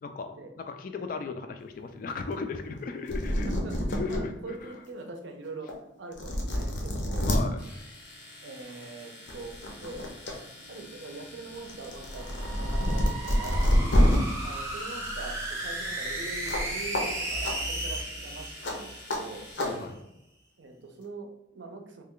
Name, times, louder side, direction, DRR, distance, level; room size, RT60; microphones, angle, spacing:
voice 1, 0.0-3.6 3.9-4.7 7.3-7.6 13.8-14.3 19.6-20.0, left 4 dB, 45° left, 7 dB, 0.3 m, -37 dB
sound 1, 2.8-2.9 3.1-4.2 4.7-4.8 5.7-5.8 6.1-7.4 8.7-8.9 9.3-10.3 10.7-14.2 16.5-16.7 16.9-17.0 17.4-17.5 18.6-18.7 19.1-19.2 19.6-19.7, equal, 70° left, 0.7 m, -27 dB
voice 2, 3.5-5.7 6.0-7.3 8.4-9.5 9.8-10.0 10.7-13.7 14.4-19.5 20.6-22.0, right 3 dB, 70° right, 3 dB, 0.5 m, -43 dB
Domestic sounds home sounds, 7.6-19.9, left 1 dB, 90° left, 1.4 m, -49 dB
sound 2, 12.0-19.5, right 1 dB, 15° right, 0.6 m, -35 dB
3.2 x 2.2 x 3.6 m, 0.87 s
head